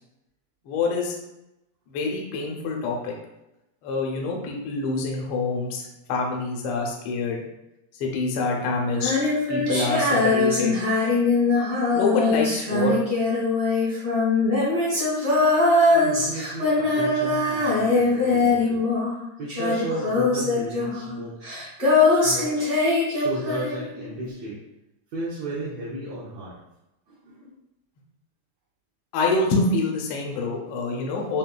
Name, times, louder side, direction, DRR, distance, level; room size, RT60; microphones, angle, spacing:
voice 1, 0.6-1.1 1.9-3.1 3.8-5.8 6.1-7.4 8.0-9.1 9.5-10.7 11.9-13.0 29.1-31.4, left 3 dB, 75° left, 0 dB, 1.2 m, -26 dB
Female singing, 8.9-19.2 19.5-23.9, left 3 dB, 35° right, 0.7 m, -22 dB
voice 2, 15.9-18.8 19.4-21.4 22.1-22.7 23.1-24.6 25.1-26.6 27.1-27.5, right 1 dB, 70° right, -7 dB, 1.7 m, -34 dB
6.6 x 2.4 x 2.3 m, 0.91 s
omnidirectional pair, 3.5 m